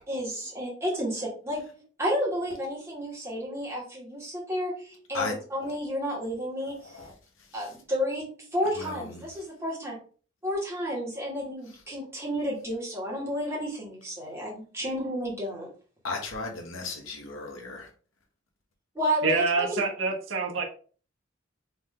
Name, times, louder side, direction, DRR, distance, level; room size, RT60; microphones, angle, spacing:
voice 1, 0.1-1.6 2.0-7.0 7.5-8.2 8.5-10.0 10.4-15.7 19.0-19.8, equal, 15° right, 1.9 m, -31 dB
voice 2, 6.8-7.1 8.8-9.3 16.0-17.9, left 3 dB, 80° left, 1.2 m, -35 dB
voice 3, 19.2-20.6, right 4 dB, 70° right, 1.0 m, -26 dB
3.5 x 3.2 x 3.7 m
head